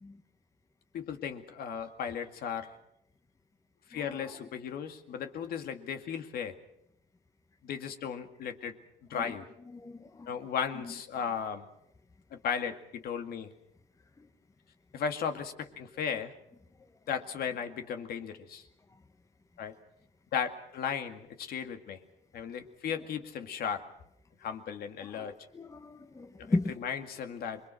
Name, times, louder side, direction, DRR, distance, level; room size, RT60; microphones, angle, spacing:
voice 1, 0.9-2.7 3.9-6.5 7.6-8.8 9.1-9.4 10.3-11.7 12.3-13.5 14.9-16.3 17.1-18.7 19.6-19.7 20.3-22.0 22.3-23.8 24.4-25.3 26.5-27.6, left 7 dB, 65° left, 7 dB, 2.2 m, -36 dB
voice 2, 9.7-10.3 25.1-26.7, left 2 dB, 20° left, 8 dB, 1.2 m, -35 dB
27.5 x 22.0 x 6.4 m, 0.78 s
cardioid pair, 110°, 17 cm